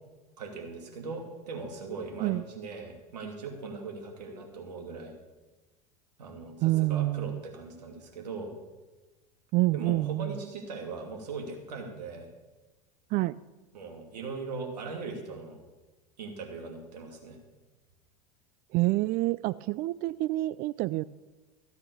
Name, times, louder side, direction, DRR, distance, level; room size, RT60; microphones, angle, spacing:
voice 1, 0.4-5.1 6.2-8.5 9.7-12.3 13.7-15.6 16.2-17.4, right 4 dB, 85° right, 2 dB, 2.8 m, -39 dB
voice 2, 6.6-7.4 9.5-10.3 13.1-13.4 18.7-21.0, right 18 dB, 45° right, 18 dB, 0.4 m, -27 dB
15.5 x 8.1 x 7.0 m, 1.2 s
hypercardioid pair, 95°, 20 cm